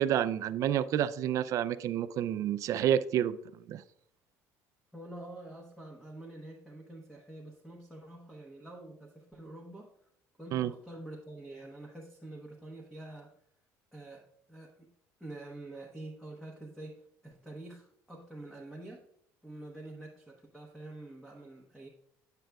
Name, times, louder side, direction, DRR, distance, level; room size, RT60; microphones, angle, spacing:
voice 1, 0.0-3.4 3.7-3.8 10.5-10.7, right 10 dB, 50° right, 13 dB, 0.4 m, -29 dB
voice 2, 4.9-10.1 10.4-13.3 13.9-14.9 15.2-19.0 19.4-21.9, right 2 dB, 5° left, 0 dB, 0.9 m, -47 dB
9.0 x 7.5 x 2.3 m, 0.71 s
cardioid pair, 145°, 7 cm